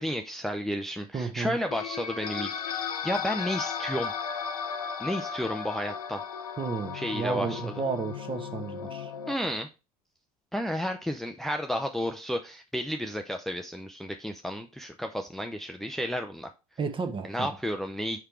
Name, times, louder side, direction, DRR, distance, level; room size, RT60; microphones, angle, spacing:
voice 1, 0.0-4.1 5.0-6.2 6.9-7.7 9.3-9.7 10.5-16.5 17.2-18.2, equal, ahead, 0.5 m, -32 dB
voice 2, 1.1-1.6 6.6-9.1 16.8-17.5, right 5 dB, 30° right, 1.2 m, -32 dB
sound 1, 1.7-9.3, left 7 dB, 85° left, 0.5 m, -35 dB
5.0 x 4.6 x 4.4 m
figure-of-eight pair, 65°, 18 cm